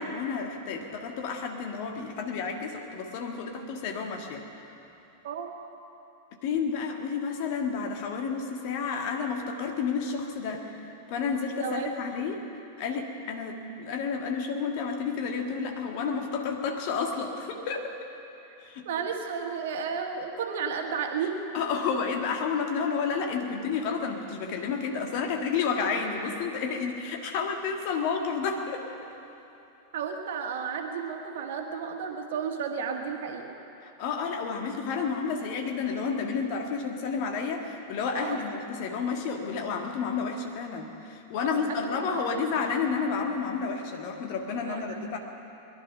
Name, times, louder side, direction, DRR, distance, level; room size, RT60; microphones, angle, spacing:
voice 1, 0.0-4.5 6.4-10.7 11.1-12.4 12.8-17.9 18.6-18.9 21.5-28.8 33.8-45.2, left 5 dB, 45° left, 3 dB, 1.8 m, -31 dB
voice 2, 11.6-12.2 18.9-21.4 29.9-33.5 38.2-38.4 41.6-42.4 44.6-45.1, right 6 dB, 55° right, 3 dB, 1.7 m, -33 dB
22.0 x 11.5 x 5.8 m, 2.9 s
figure-of-eight pair, 90°, 0 cm